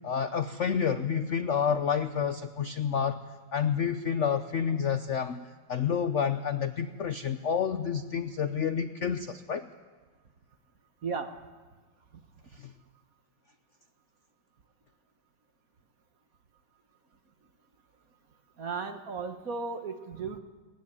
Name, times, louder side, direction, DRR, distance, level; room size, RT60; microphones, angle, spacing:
voice 1, 0.0-3.2 3.5-9.7 12.5-12.7, left 7 dB, 65° left, 9 dB, 0.7 m, -29 dB
voice 2, 11.0-11.3 18.6-20.4, right 4 dB, 50° right, 7 dB, 1.5 m, -35 dB
19.5 x 16.0 x 9.8 m, 1.3 s
omnidirectional pair, 2.2 m